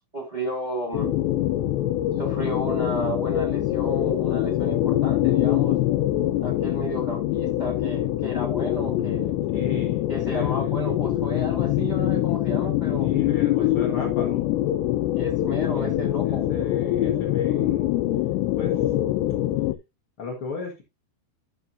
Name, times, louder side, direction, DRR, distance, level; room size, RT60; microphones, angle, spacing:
voice 1, 0.1-1.1 2.2-5.8 6.4-9.3 10.1-13.1 13.6-13.7 15.1-16.4, right 1 dB, 10° right, 3.0 m, -33 dB
sound 1, 0.9-19.7, left 14 dB, 85° left, 2.8 m, -24 dB
voice 2, 9.5-10.7 13.0-14.6 15.7-18.0 18.5-18.8 20.2-20.8, left 4 dB, 65° left, 1.3 m, -34 dB
12.0 x 7.0 x 2.7 m
omnidirectional pair, 4.9 m